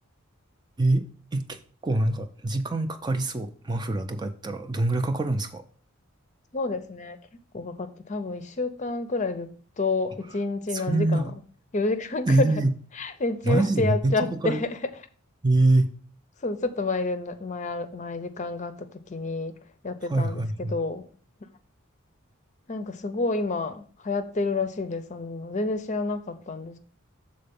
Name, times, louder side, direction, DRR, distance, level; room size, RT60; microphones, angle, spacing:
voice 1, 1.8-5.6 10.7-11.3 12.3-12.7 13.4-14.1 14.4-14.6 15.4-15.9 20.1-20.8, right 2 dB, 20° right, 7 dB, 0.4 m, -24 dB
voice 2, 6.5-7.2 7.5-9.5 9.8-11.3 11.7-12.6 13.0-14.8 16.4-19.5 19.8-21.0 22.7-26.8, left 3 dB, 35° left, 10 dB, 0.6 m, -29 dB
6.7 x 3.8 x 5.3 m, 0.44 s
head